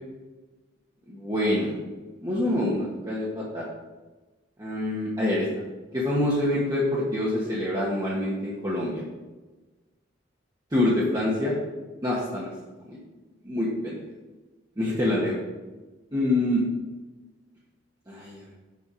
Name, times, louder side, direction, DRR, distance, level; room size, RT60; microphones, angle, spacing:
voice 1, 1.1-1.7 2.2-3.6 4.6-5.5 5.9-9.0 10.7-11.6 12.0-12.5 12.9-13.0 13.4-14.0 14.8-15.4 16.1-16.6 18.1-18.5, left 1 dB, 20° right, -7 dB, 1.5 m, -26 dB
7.0 x 6.9 x 5.0 m, 1.2 s
head